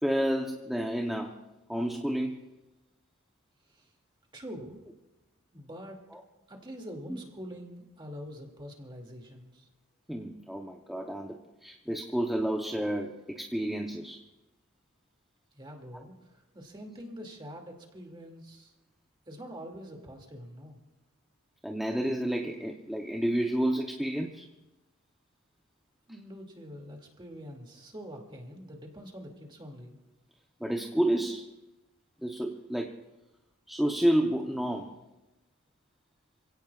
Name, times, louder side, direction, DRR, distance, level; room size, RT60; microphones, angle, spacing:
voice 1, 0.0-1.4 1.7-2.4 6.1-6.2 7.1-7.2 10.1-14.2 21.6-24.5 30.6-31.5 32.2-33.0 33.7-35.0, right 1 dB, ahead, 1 dB, 0.8 m, -30 dB
voice 2, 4.3-4.8 5.5-6.0 6.5-9.7 15.5-18.7 19.3-20.8 26.1-30.0, equal, 20° right, 1 dB, 2.5 m, -45 dB
28.0 x 17.0 x 2.4 m, 1.0 s
head